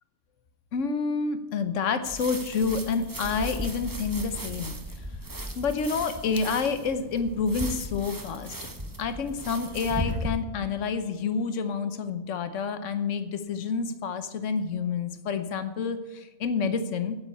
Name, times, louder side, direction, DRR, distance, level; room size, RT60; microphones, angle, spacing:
voice 1, 0.7-5.1 5.6-8.5 9.0-17.2, left 5 dB, 80° left, 10 dB, 1.3 m, -29 dB
sound 1, 2.0-10.3, right 1 dB, 20° right, 0.9 m, -36 dB
9.0 x 8.6 x 8.4 m, 1.1 s
omnidirectional pair, 1.3 m